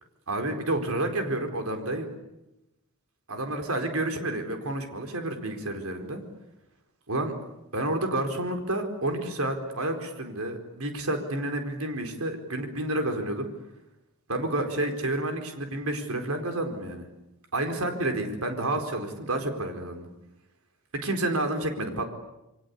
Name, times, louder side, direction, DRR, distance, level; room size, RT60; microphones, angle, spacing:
voice 1, 0.3-2.1 3.3-6.2 7.1-7.3 7.7-13.5 14.3-17.1 17.5-20.1 20.9-22.0, right 1 dB, 85° right, 6 dB, 4.4 m, -30 dB
28.0 x 24.5 x 8.4 m, 0.93 s
head